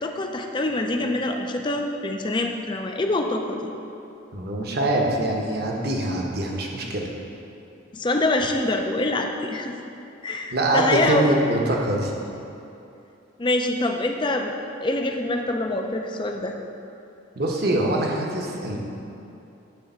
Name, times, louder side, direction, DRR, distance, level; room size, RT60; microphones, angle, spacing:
voice 1, 0.0-3.7 7.9-9.7 10.2-11.2 13.4-14.5 14.8-16.5, left 2 dB, 25° left, 4 dB, 0.4 m, -25 dB
voice 2, 4.3-7.1 10.5-12.1 17.4-18.8, right 1 dB, 50° right, -1 dB, 1.0 m, -24 dB
10.0 x 3.4 x 6.8 m, 2.8 s
head